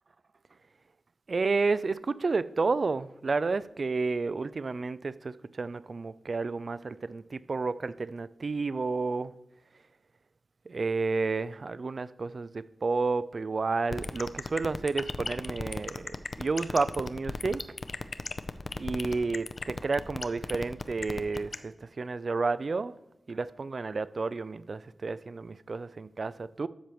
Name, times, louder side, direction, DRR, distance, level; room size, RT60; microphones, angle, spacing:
voice 1, 1.3-9.3 10.7-17.6 18.8-23.0 23.3-26.7, right 4 dB, 55° right, 0.3 m, -31 dB
sound 1, 13.9-21.6, left 3 dB, 55° left, 0.5 m, -34 dB
12.5 x 6.9 x 3.1 m
wide cardioid pair, 95°, 0 cm